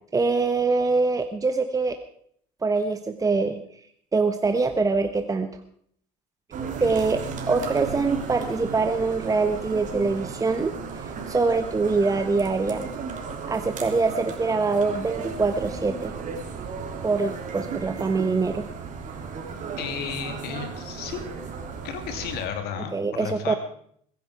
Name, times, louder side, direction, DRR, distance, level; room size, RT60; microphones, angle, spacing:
voice 1, 0.1-2.0 2.6-3.6 4.1-5.5 6.8-12.8 13.5-16.1 17.0-18.7 22.9-23.6, right 4 dB, 20° right, 7 dB, 1.2 m, -24 dB
sound 1, 6.5-22.5, right 5 dB, 45° right, 3.5 m, -35 dB
voice 2, 19.8-21.2 21.8-23.6, left 7 dB, 60° left, 7 dB, 2.6 m, -33 dB
21.5 x 10.5 x 4.9 m, 0.62 s
supercardioid pair, 90°, 18 cm